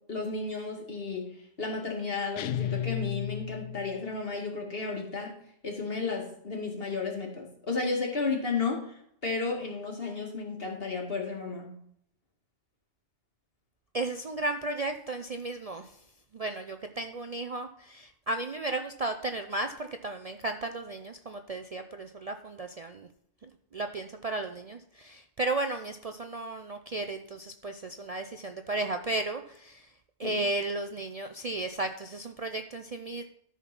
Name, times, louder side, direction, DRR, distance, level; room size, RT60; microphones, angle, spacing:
voice 1, 0.1-5.4 5.6-11.7 30.2-30.4, left 4 dB, 55° left, 0 dB, 2.3 m, -33 dB
sound 1, 2.4-4.1, left 10 dB, 90° left, 0.9 m, -33 dB
voice 2, 13.9-15.9 16.3-23.1 23.7-29.9 30.2-33.2, right 2 dB, 45° right, 6 dB, 0.5 m, -34 dB
13.0 x 4.4 x 6.0 m, 0.70 s
omnidirectional pair, 1.2 m